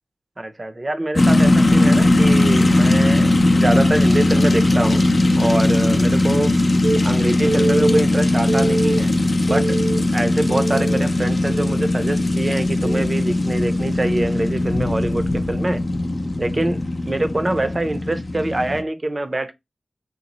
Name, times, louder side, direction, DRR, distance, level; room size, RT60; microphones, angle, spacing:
voice 1, 0.4-5.0 5.4-6.5 7.0-9.1 9.5-9.8 10.1-15.8 16.4-16.8 17.1-19.5, right 2 dB, 35° right, 0.5 m, -24 dB
sound 1, 1.2-18.8, left 1 dB, 45° left, 0.5 m, -18 dB
Telephone, 6.8-7.0 7.5-8.0 8.5-9.0 9.5-10.0 10.5-11.0 11.5-11.8 12.8-13.0, right 2 dB, 80° right, 0.6 m, -23 dB
3.0 x 2.1 x 3.9 m
wide cardioid pair, 60°, 0 cm